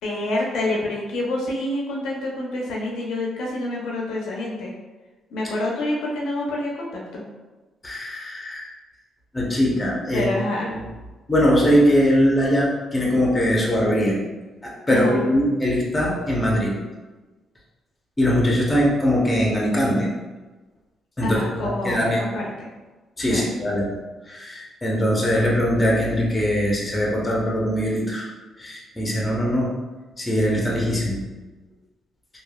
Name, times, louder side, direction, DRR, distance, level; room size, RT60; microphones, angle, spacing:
voice 1, 0.0-4.7 5.3-7.2 10.1-10.7 14.9-15.2 21.2-22.7 23.3-23.5, left 2 dB, 80° left, -3 dB, 0.6 m, -27 dB
voice 2, 7.8-8.7 9.3-10.3 10.7-10.8 11.3-14.2 14.6-16.7 18.2-20.1 21.2-22.2 23.2-23.9 24.3-28.3 28.6-29.7 30.2-31.2, equal, 20° left, -4 dB, 0.8 m, -21 dB
3.1 x 2.3 x 2.3 m, 1.2 s
cardioid pair, 90°, 0 cm